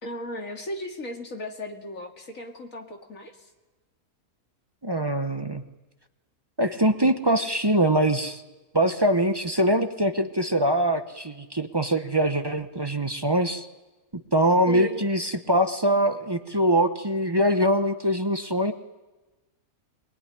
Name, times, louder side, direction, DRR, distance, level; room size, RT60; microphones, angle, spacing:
voice 1, 0.0-3.5 14.7-15.1, left 1 dB, 55° left, 3 dB, 2.6 m, -36 dB
voice 2, 4.8-5.6 6.6-8.4 8.7-13.7 14.3-18.7, right 1 dB, 20° right, 7 dB, 0.8 m, -23 dB
22.5 x 20.0 x 10.0 m, 1.2 s
omnidirectional pair, 1.7 m